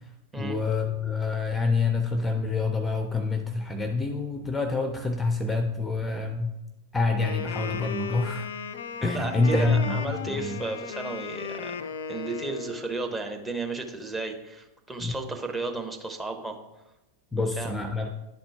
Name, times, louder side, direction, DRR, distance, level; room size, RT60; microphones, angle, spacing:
voice 1, 0.4-6.5 6.9-8.5 9.0-10.6 15.0-15.2 17.3-18.1, left 3 dB, 10° left, 6 dB, 0.6 m, -27 dB
Wind instrument woodwind instrument, 7.0-12.9, left 6 dB, 65° left, 0.4 m, -36 dB
voice 2, 9.1-16.6 17.4-17.7, right 3 dB, 10° right, 3 dB, 0.9 m, -34 dB
10.5 x 4.3 x 4.6 m, 0.96 s
figure-of-eight pair, 90°, 0 cm